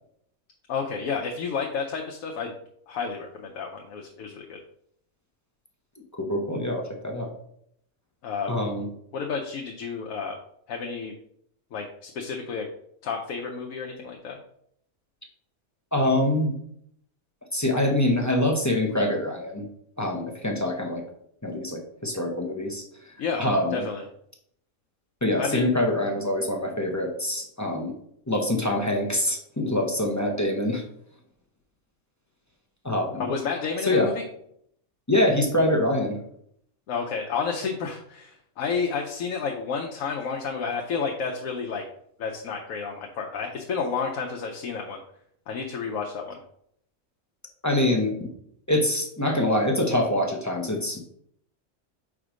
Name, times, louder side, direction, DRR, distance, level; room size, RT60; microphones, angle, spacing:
voice 1, 0.7-2.5 2.9-4.6 8.2-8.5 9.1-10.4 10.7-11.1 11.7-12.7 13.0-14.4 23.2-23.5 23.7-24.0 25.4-25.7 33.2-34.2 36.9-41.8 42.2-45.0 45.5-46.4, left 5 dB, 85° left, 1 dB, 1.1 m, -31 dB
voice 2, 6.1-7.3 8.5-8.9 15.9-16.5 17.5-19.6 20.0-21.0 21.4-22.8 23.4-23.9 25.2-27.9 28.3-30.8 32.8-33.2 33.9-34.1 35.1-36.2 47.6-48.3 48.7-51.0, left 1 dB, 15° left, 1 dB, 0.7 m, -25 dB
4.8 x 4.3 x 5.0 m, 0.70 s
omnidirectional pair, 1.4 m